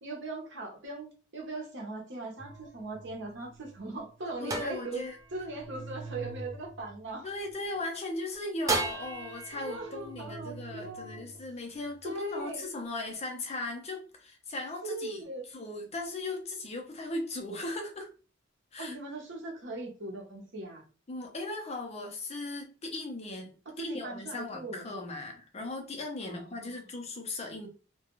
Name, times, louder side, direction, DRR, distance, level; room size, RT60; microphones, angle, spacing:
voice 1, 0.0-5.0 5.3-7.3 9.5-11.2 12.0-12.7 14.8-15.5 18.8-20.8 23.8-24.9 26.2-26.8, right 2 dB, 65° right, -1 dB, 0.9 m, -39 dB
sound 1, 2.4-7.7 8.7-12.0, right 3 dB, 15° right, 0.4 m, -39 dB
voice 2, 4.4-5.2 7.2-18.1 18.7-19.0 21.1-27.7, left 2 dB, 35° left, 2 dB, 0.6 m, -38 dB
2.3 x 2.2 x 2.9 m, 0.36 s
head